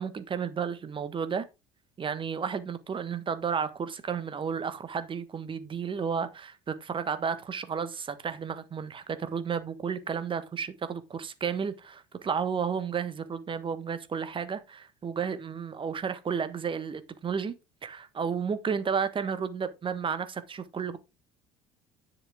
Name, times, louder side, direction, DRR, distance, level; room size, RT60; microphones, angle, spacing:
voice 1, 0.0-1.4 2.0-17.5 17.8-21.0, right 6 dB, 30° right, 1.5 m, -32 dB
10.5 x 6.8 x 3.7 m
figure-of-eight pair, 60°, 16 cm